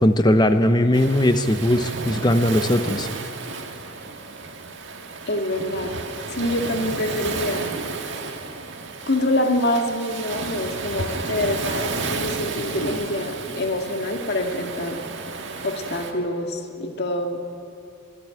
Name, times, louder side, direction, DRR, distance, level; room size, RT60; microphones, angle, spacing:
voice 1, 0.0-3.1, left 1 dB, 20° left, 9 dB, 0.8 m, -19 dB
Waves surf, 0.9-16.1, right 3 dB, 60° right, 1.8 m, -32 dB
voice 2, 5.3-6.0 6.3-7.7 9.1-15.0 15.6-17.4, left 1 dB, 50° left, 4 dB, 2.1 m, -25 dB
24.5 x 12.5 x 9.0 m, 2.5 s
head